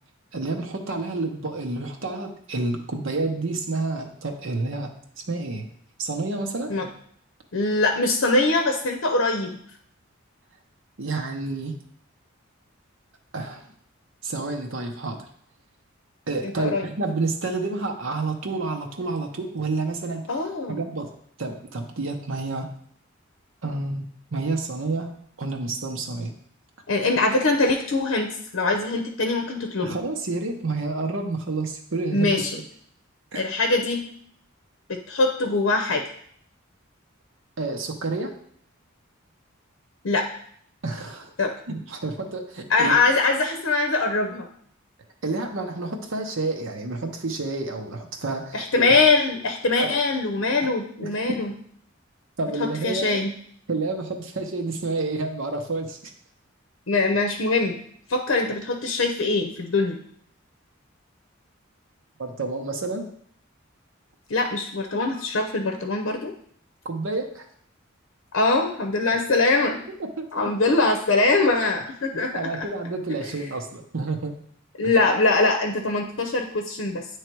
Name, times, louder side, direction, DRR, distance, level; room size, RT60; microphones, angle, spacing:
voice 1, 0.3-4.9 5.2-5.7 6.0-6.7 11.0-11.8 13.3-13.6 14.2-15.2 16.3-20.3 20.7-21.1 21.4-22.7 23.6-24.0 24.3-25.1 25.4-26.3 29.8-32.3 33.3-33.4 37.6-38.4 40.8-41.3 41.7-42.9 45.2-48.7 49.8-49.9 51.0-51.1 52.4-53.2 53.7-56.1 62.2-63.1 66.8-67.5 70.0-70.3 72.3-74.4, right 3 dB, 65° right, 3 dB, 0.8 m, -29 dB
voice 2, 7.5-9.6 16.4-16.9 20.3-20.8 26.9-30.0 32.1-32.6 33.3-34.1 34.9-36.0 40.0-40.3 41.4-41.5 42.7-44.5 48.5-51.5 52.6-53.3 56.9-57.8 58.1-60.0 64.3-66.3 68.3-69.8 70.3-72.6 74.8-77.1, left 3 dB, 75° left, 3 dB, 0.7 m, -22 dB
9.0 x 3.2 x 4.5 m, 0.63 s
head